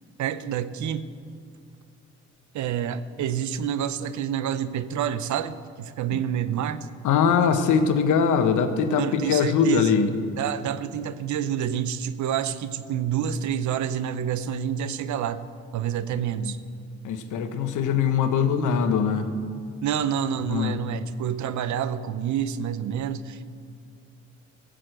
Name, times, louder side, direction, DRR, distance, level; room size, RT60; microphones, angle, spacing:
voice 1, 0.2-1.1 2.5-6.9 8.9-10.0 10.4-15.4 15.7-16.6 19.8-23.6, right 9 dB, 70° right, 14 dB, 0.7 m, -28 dB
voice 2, 7.0-10.1 16.4-16.5 17.0-19.3 20.5-20.8, left 6 dB, 80° left, 8 dB, 1.1 m, -22 dB
15.0 x 6.4 x 7.9 m, 2.2 s
cardioid pair, 90°, 30 cm